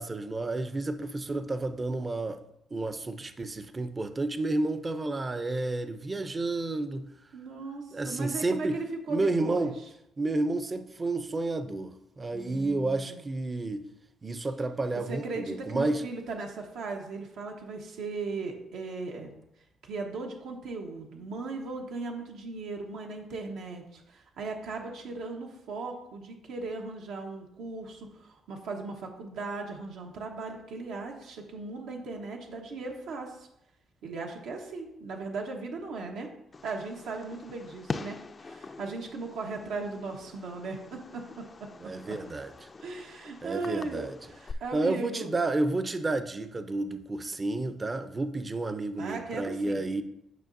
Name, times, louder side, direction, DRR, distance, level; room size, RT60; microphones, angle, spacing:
voice 1, 0.0-2.4 2.7-7.1 7.9-8.8 9.1-9.8 10.2-13.9 14.2-16.0 41.8-42.7 43.4-44.1 44.7-50.0, right 2 dB, 30° right, 10 dB, 0.5 m, -31 dB
voice 2, 7.3-9.7 12.3-13.2 15.1-19.3 19.8-33.5 34.0-36.3 36.6-38.2 38.4-41.7 42.1-42.2 42.8-45.3 49.0-49.8, right 3 dB, 80° right, 1 dB, 1.1 m, -37 dB
Fireworks, 36.5-44.5, left 4 dB, 35° left, 0.4 m, -44 dB
9.2 x 5.7 x 2.6 m, 0.80 s
cardioid pair, 90°, 0 cm